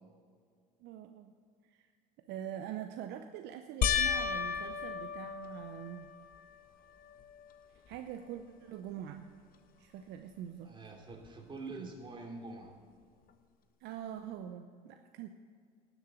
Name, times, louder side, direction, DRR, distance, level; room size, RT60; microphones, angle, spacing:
voice 1, 0.8-1.3 1.6-1.9 2.2-6.1 7.9-9.3 9.8-10.7 11.7-11.9 13.8-15.3, right 10 dB, 60° right, 7 dB, 0.7 m, -44 dB
sound 1, 3.8-6.4 7.0-7.6 7.9-8.0 11.2-11.3, left 7 dB, 45° left, 0.9 m, -34 dB
voice 2, 10.6-12.7, right 3 dB, 25° right, 1 dB, 2.8 m, -45 dB
12.0 x 7.3 x 9.0 m, 2.1 s
hypercardioid pair, 80°, 20 cm